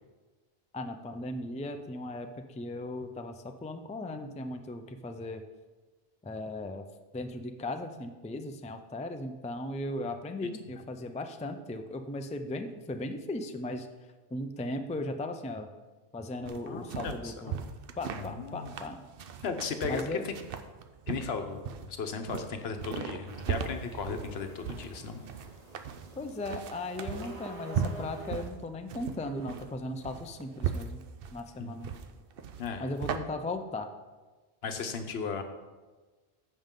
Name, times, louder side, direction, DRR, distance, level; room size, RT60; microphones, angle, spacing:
voice 1, 0.7-5.4 6.2-6.9 7.1-13.9 14.3-15.7 16.1-17.5 18.0-19.0 19.9-20.2 26.2-31.0 31.3-31.9 32.8-33.9, left 2 dB, 10° left, 6 dB, 0.3 m, -37 dB
sound 1, 16.5-33.2, right 7 dB, 65° right, 0.8 m, -38 dB
voice 2, 16.7-17.5 18.2-18.7 19.4-20.3 21.1-25.2 31.6-31.8 32.6-32.9 34.6-35.4, left 5 dB, 80° left, 7 dB, 1.1 m, -36 dB
sound 2, 23.3-28.4, right 2 dB, 40° right, 1.2 m, -47 dB
14.5 x 5.4 x 3.7 m, 1.3 s
omnidirectional pair, 1.0 m